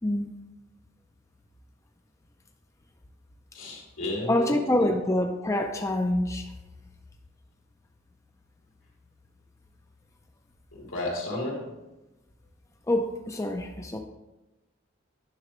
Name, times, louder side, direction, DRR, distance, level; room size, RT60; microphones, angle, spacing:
voice 1, 3.5-4.9 10.7-11.7, left 1 dB, 85° left, -3 dB, 2.6 m, -33 dB
voice 2, 4.3-6.5 12.9-14.0, left 1 dB, 15° left, 3 dB, 0.4 m, -26 dB
9.6 x 5.9 x 3.0 m, 1.0 s
head